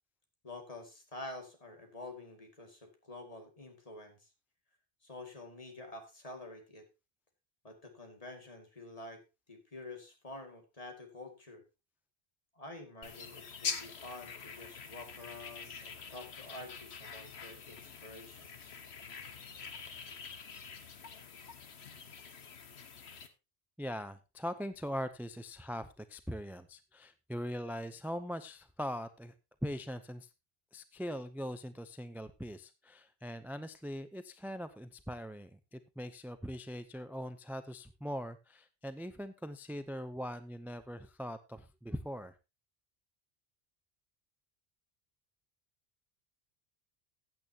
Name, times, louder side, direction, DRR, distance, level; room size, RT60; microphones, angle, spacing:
voice 1, 0.4-4.3 5.0-6.9 7.6-9.2 9.5-11.6 12.5-18.8, left 2 dB, 35° left, 4 dB, 2.3 m, -48 dB
sound 1, 13.0-23.3, left 6 dB, 80° left, 1.4 m, -45 dB
voice 2, 23.8-29.3 29.6-30.3 30.7-42.3, equal, 5° right, 11 dB, 0.4 m, -41 dB
15.0 x 8.8 x 2.8 m, 0.26 s
omnidirectional pair, 1.1 m